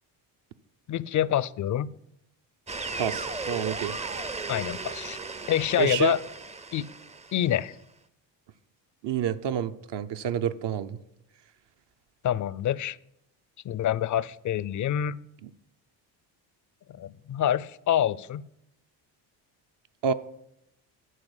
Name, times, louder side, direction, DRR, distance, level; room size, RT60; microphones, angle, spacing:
voice 1, 0.9-1.9 4.5-5.2 5.5-6.2 6.7-6.9 7.3-7.8 12.2-13.0 13.6-15.2 16.9-18.4, left 11 dB, 40° left, 0.4 m, -26 dB
sound 1, 2.7-7.6, right 3 dB, 15° right, 0.5 m, -36 dB
voice 2, 3.0-4.0 5.8-6.1 9.0-11.0 15.4-15.5 20.0-20.1, right 8 dB, 60° right, 0.7 m, -28 dB
11.0 x 4.7 x 8.1 m
supercardioid pair, 80°, 48 cm